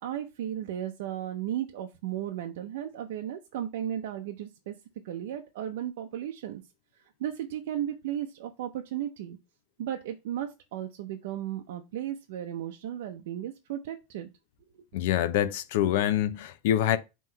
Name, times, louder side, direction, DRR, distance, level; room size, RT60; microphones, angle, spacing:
voice 1, 0.0-4.7 5.0-6.6 7.2-9.4 9.8-14.3 14.7-14.8, right 11 dB, 70° right, 0.6 m, -35 dB
voice 2, 14.9-17.0, left 11 dB, 60° left, 0.6 m, -25 dB
5.7 x 3.1 x 5.5 m
supercardioid pair, 180°, 0 cm